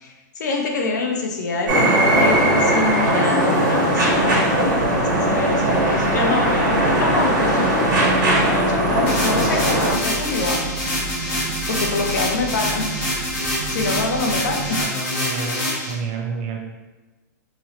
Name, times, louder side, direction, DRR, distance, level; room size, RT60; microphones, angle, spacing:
voice 1, 0.0-7.9 8.3-10.6 11.7-12.9 13.7-14.9, left 3 dB, 70° left, 1 dB, 0.6 m, -26 dB
sound 1, 1.7-9.9, right 1 dB, 85° right, 1.3 m, -19 dB
sound 2, 4.6-14.8, right 2 dB, 55° right, 1.3 m, -32 dB
sound 3, 9.1-15.9, left 1 dB, 20° left, 1.0 m, -26 dB
voice 2, 14.7-16.6, right 3 dB, 30° right, 1 dB, 0.5 m, -29 dB
3.0 x 2.9 x 2.8 m, 1.2 s
supercardioid pair, 165°, 10 cm